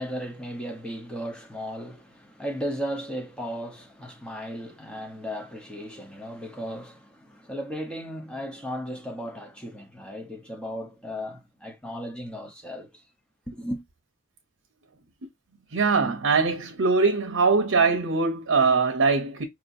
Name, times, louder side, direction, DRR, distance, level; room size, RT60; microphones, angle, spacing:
voice 1, 0.0-13.0 13.5-13.8, equal, 5° left, 0.9 m, -35 dB
voice 2, 15.7-19.4, right 4 dB, 80° right, 0.7 m, -22 dB
4.7 x 2.9 x 2.6 m
head